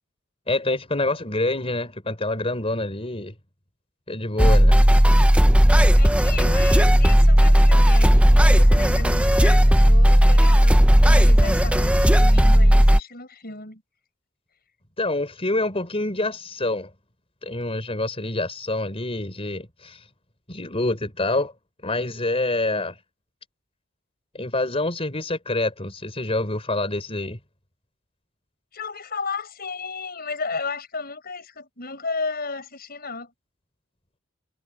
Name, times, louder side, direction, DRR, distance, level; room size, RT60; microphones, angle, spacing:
voice 1, 0.5-3.3 4.1-4.8 15.0-16.9 17.4-20.0 20.5-21.5 21.8-22.9 24.3-27.4, left 2 dB, 30° left, 4.6 m, -26 dB
sound 1, 4.4-13.0, equal, 5° right, 0.8 m, -15 dB
voice 2, 5.9-13.8 28.7-33.3, left 4 dB, 45° left, 6.5 m, -34 dB
head